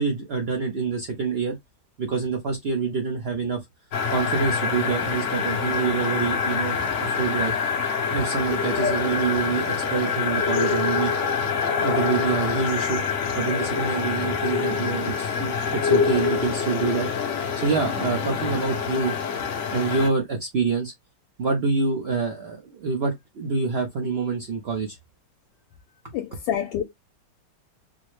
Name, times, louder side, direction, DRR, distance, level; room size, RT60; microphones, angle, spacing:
voice 1, 0.0-1.6 2.0-3.6 4.1-7.5 8.1-11.1 11.8-13.0 13.4-19.2 19.7-20.9 21.4-25.0, right 4 dB, 80° right, 0.5 m, -26 dB
sound 1, 3.9-20.1, left 5 dB, 65° left, 0.7 m, -25 dB
voice 2, 26.1-26.8, left 10 dB, 80° left, 1.3 m, -27 dB
4.0 x 2.1 x 3.0 m
omnidirectional pair, 2.0 m